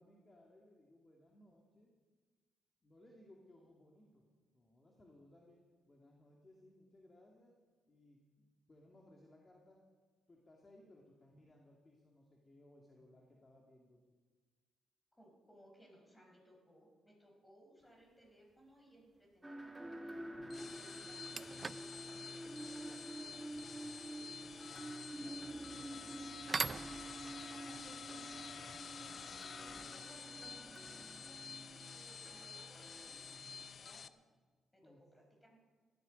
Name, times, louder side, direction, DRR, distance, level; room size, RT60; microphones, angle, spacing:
voice 1, 0.0-1.9 2.8-5.6 5.9-7.6 7.9-9.9 10.3-14.0 34.8-35.0, left 1 dB, 25° left, -1 dB, 2.3 m, -63 dB
voice 2, 15.1-20.1 20.5-33.2 33.5-34.2 34.7-35.6, equal, 10° left, 0 dB, 5.3 m, -64 dB
sound 1, 18.0-18.3 20.3-20.4 20.9-29.7, right 4 dB, 30° right, 0.4 m, -47 dB
sound 2, 19.4-33.7, right 1 dB, 15° right, 1.6 m, -49 dB
sound 3, 20.4-34.1, left 5 dB, 45° left, 0.6 m, -50 dB
18.0 x 13.0 x 5.3 m, 1.4 s
cardioid pair, 90°, 0 cm